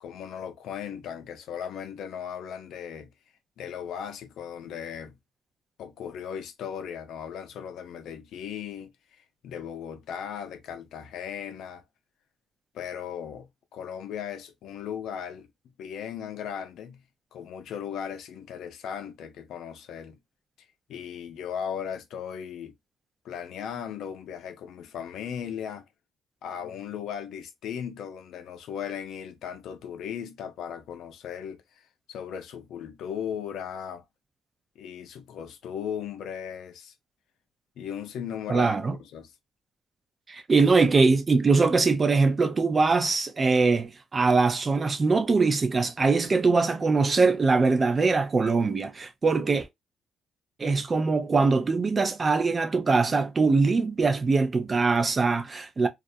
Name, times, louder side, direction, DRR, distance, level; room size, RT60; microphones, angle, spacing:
voice 1, 0.0-3.1 3.6-5.2 5.8-8.9 9.4-11.8 12.7-15.5 15.8-17.0 17.3-20.2 20.9-22.8 23.2-25.8 26.4-31.6 32.1-34.0 34.8-36.9 37.8-39.3 42.8-42.9, left 8 dB, 80° left, 0.5 m, -37 dB
voice 2, 38.5-39.0 40.3-49.7 50.6-55.9, right 4 dB, 35° right, 0.5 m, -22 dB
2.4 x 2.1 x 2.5 m
cardioid pair, 90°, 0 cm